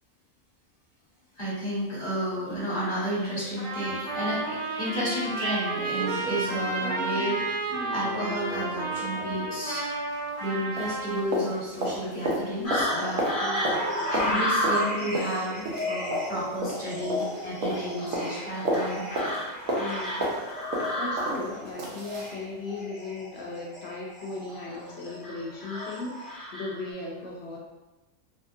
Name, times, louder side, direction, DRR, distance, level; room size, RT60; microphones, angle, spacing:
voice 1, 1.4-7.6 7.9-9.8 10.4-13.2 14.1-19.0, equal, 40° left, -8 dB, 1.1 m, -31 dB
Trumpet, 3.6-11.3, right 2 dB, 55° right, 0.5 m, -32 dB
sound 1, 5.5-5.6 5.9-10.5 10.8-22.4 22.7-22.8, right 1 dB, 80° right, 1.0 m, -34 dB
sound 2, 12.6-26.9, equal, 20° left, 0.7 m, -32 dB
voice 2, 13.4-14.0 19.7-20.6 20.9-27.6, left 3 dB, 65° left, -3 dB, 0.7 m, -37 dB
2.7 x 2.3 x 2.5 m, 1.1 s
omnidirectional pair, 1.4 m